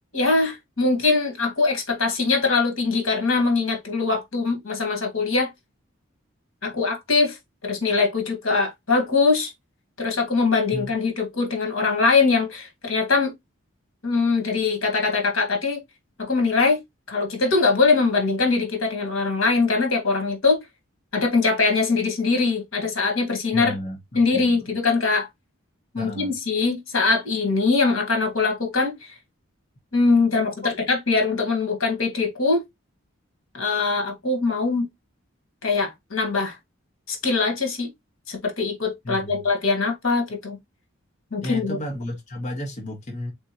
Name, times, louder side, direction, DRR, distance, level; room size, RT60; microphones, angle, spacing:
voice 1, 0.1-5.5 6.6-7.4 7.6-9.5 10.0-13.3 14.0-15.8 16.2-16.8 17.1-20.6 21.1-23.8 24.2-25.3 25.9-29.2 29.9-32.6 33.5-34.8 35.6-36.6 37.1-37.9 38.3-40.6 41.3-41.8, left 4 dB, 80° left, 1.7 m, -22 dB
voice 2, 23.5-24.7 25.9-26.3 39.0-39.4 41.4-43.3, left 1 dB, 35° left, 1.0 m, -33 dB
3.9 x 3.4 x 2.9 m
head